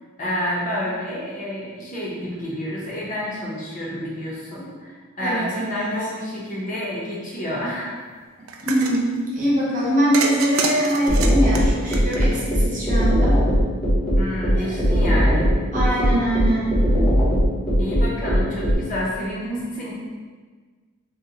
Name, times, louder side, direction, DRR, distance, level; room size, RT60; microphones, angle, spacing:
voice 1, 0.2-7.9 14.2-15.5 17.8-19.9, equal, 35° left, -5 dB, 0.6 m, -29 dB
voice 2, 5.2-5.9 8.6-13.4 14.6-14.7 15.7-16.8, right 1 dB, 40° right, -6 dB, 0.7 m, -22 dB
sound 1, 8.5-9.0 10.1-12.6, right 4 dB, 75° right, 0.3 m, -27 dB
sound 2, 11.1-18.8, equal, 5° left, 0.7 m, -18 dB
2.7 x 2.1 x 3.7 m, 1.5 s
head